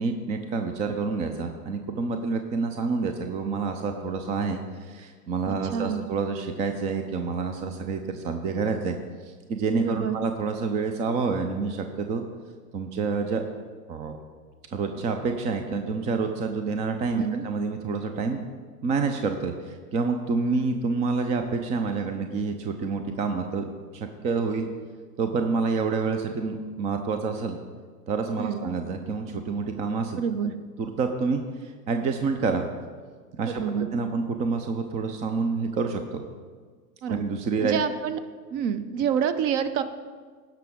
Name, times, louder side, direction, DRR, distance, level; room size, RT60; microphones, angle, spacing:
voice 1, 0.0-4.6 4.9-9.0 9.2-12.2 12.7-13.4 13.9-14.2 14.7-18.4 18.8-23.7 23.9-24.7 25.2-27.6 28.1-30.2 30.8-32.6 33.3-33.6 33.9-36.2 37.1-37.8, right 4 dB, 15° right, 6 dB, 0.4 m, -28 dB
voice 2, 5.5-6.0 9.8-10.2 17.2-17.4 28.4-28.7 30.2-30.5 33.4-33.9 37.0-37.2 37.6-38.2 38.5-39.8, right 8 dB, 35° right, 12 dB, 0.7 m, -27 dB
17.0 x 5.9 x 3.7 m, 1.5 s
figure-of-eight pair, 100°, 46 cm